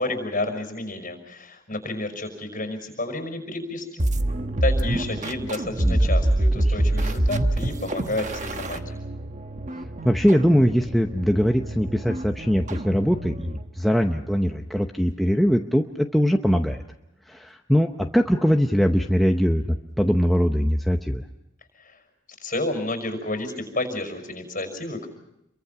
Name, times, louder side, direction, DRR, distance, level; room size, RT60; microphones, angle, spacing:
voice 1, 0.0-4.0 4.6-9.0 21.8-22.0 22.4-25.1, left 2 dB, 40° left, 6 dB, 5.7 m, -30 dB
sound 1, 4.0-13.7, right 1 dB, 40° right, 1.1 m, -26 dB
voice 2, 9.7-16.8 17.3-21.2, equal, ahead, 2 dB, 0.8 m, -22 dB
29.0 x 23.5 x 5.9 m, 0.82 s
head